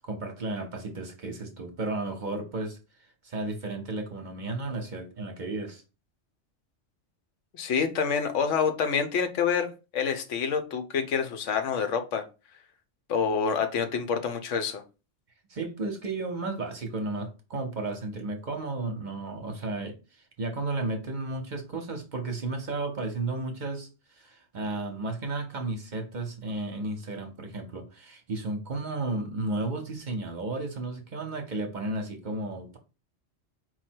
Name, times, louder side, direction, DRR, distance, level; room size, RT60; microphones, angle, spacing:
voice 1, 0.0-2.8 3.2-5.8 15.5-19.9 20.4-32.8, right 2 dB, 45° right, 0.8 m, -33 dB
voice 2, 7.5-12.2 13.1-14.8, left 6 dB, 85° left, 1.0 m, -27 dB
4.5 x 2.1 x 4.3 m
omnidirectional pair, 1.2 m